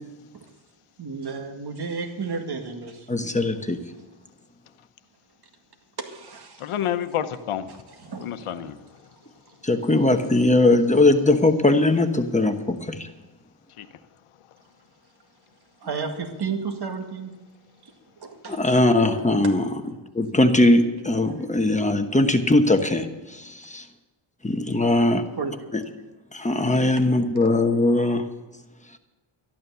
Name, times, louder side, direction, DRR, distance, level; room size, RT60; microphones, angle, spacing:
voice 1, 1.0-3.1 6.0-6.7 8.0-8.6 15.8-17.3 18.2-18.6 21.3-21.4 25.3-25.6 27.0-27.1, right 5 dB, 50° right, 4 dB, 2.0 m, -32 dB
voice 2, 3.1-3.8 9.6-13.1 18.5-19.6 20.1-23.8 24.4-25.2 26.3-28.3, left 2 dB, 15° left, 6 dB, 1.1 m, -20 dB
voice 3, 6.6-7.8 8.2-8.9 13.8-13.9, left 10 dB, 80° left, 11 dB, 1.0 m, -29 dB
12.5 x 12.0 x 6.9 m, 1.1 s
cardioid pair, 110°, 50 cm